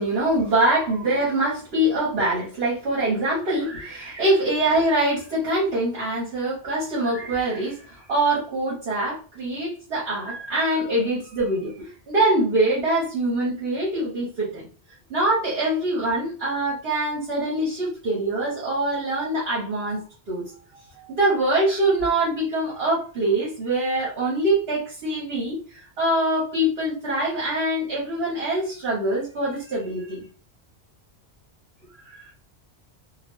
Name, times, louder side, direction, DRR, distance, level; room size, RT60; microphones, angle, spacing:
voice 1, 0.0-14.7 15.1-20.4 21.2-30.2 32.0-32.3, right 1 dB, 65° right, -6 dB, 1.2 m, -24 dB
2.9 x 2.0 x 3.0 m, 0.38 s
omnidirectional pair, 1.1 m